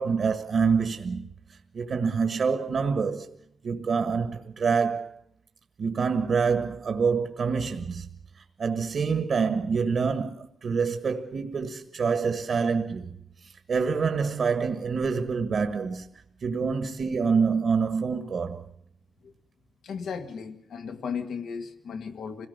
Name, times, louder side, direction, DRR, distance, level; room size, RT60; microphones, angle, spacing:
voice 1, 0.0-3.4 3.6-5.2 5.8-8.1 8.6-16.1 16.4-18.7, right 5 dB, 60° right, 1.6 m, -26 dB
voice 2, 19.8-22.5, left 6 dB, 85° left, 1.9 m, -35 dB
26.0 x 18.0 x 6.7 m
cardioid pair, 100°, 0 cm